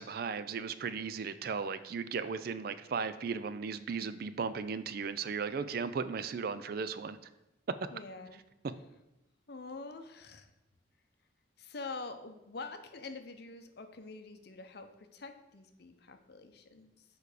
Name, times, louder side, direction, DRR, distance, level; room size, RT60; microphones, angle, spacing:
voice 1, 0.0-7.2, right 5 dB, 55° right, 13 dB, 0.4 m, -36 dB
voice 2, 7.9-8.4 9.5-10.5 11.6-17.0, left 3 dB, 60° left, 8 dB, 0.7 m, -46 dB
6.8 x 4.7 x 4.9 m, 0.90 s
head